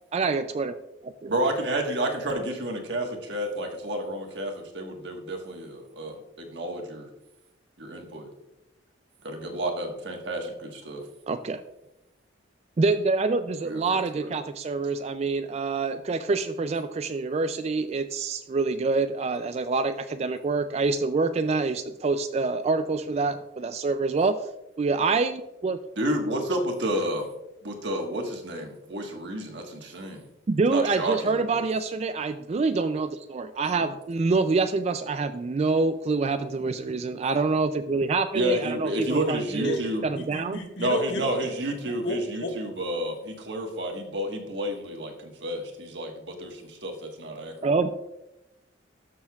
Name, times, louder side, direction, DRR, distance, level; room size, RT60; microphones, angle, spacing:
voice 1, 0.1-0.7 1.0-1.3 11.3-11.6 12.8-24.4 24.8-25.8 30.5-40.6 47.6-47.9, right 3 dB, 35° right, 10 dB, 0.3 m, -26 dB
voice 2, 1.3-7.1 7.8-8.3 9.2-11.0 13.6-14.3 26.0-27.3 27.6-30.2 30.7-31.6 33.8-33.9 38.3-40.0 40.8-47.7, right 1 dB, 65° right, 2 dB, 1.4 m, -30 dB
voice 3, 40.1-41.3 41.9-42.5, left 1 dB, 65° left, 3 dB, 1.5 m, -33 dB
12.5 x 6.7 x 2.3 m, 0.91 s
head